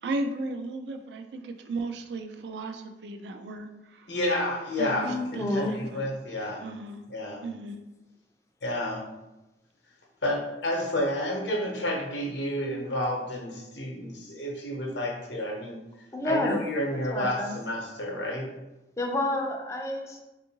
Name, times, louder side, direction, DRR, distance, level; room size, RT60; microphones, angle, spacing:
voice 1, 0.0-4.1 4.8-6.1 6.6-7.0 7.4-7.8, right 2 dB, 70° right, 6 dB, 0.3 m, -35 dB
voice 2, 4.1-6.6 7.1-7.4 8.6-9.0 10.2-15.8 16.2-18.5, left 1 dB, 85° left, 0 dB, 0.7 m, -30 dB
voice 3, 5.0-5.8 16.1-16.6 17.1-17.6 19.0-20.2, left 1 dB, 15° left, 1 dB, 0.4 m, -29 dB
3.6 x 2.4 x 2.8 m, 0.99 s
head